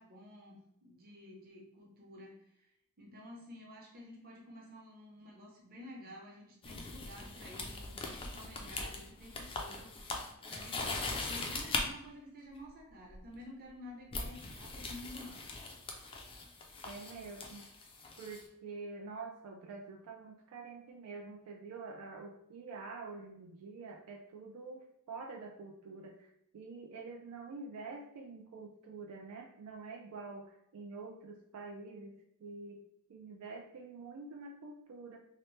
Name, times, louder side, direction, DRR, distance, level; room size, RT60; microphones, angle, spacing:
voice 1, 0.0-2.7 3.0-15.5, left 1 dB, 45° right, -2 dB, 0.8 m, -51 dB
sound 1, 6.6-11.8 13.1-13.3 14.1-18.4, left 3 dB, 25° left, 0.4 m, -41 dB
voice 2, 16.8-17.7 18.2-32.8 33.1-35.2, right 4 dB, 75° right, 1 dB, 0.3 m, -47 dB
2.8 x 2.0 x 3.1 m, 0.77 s
head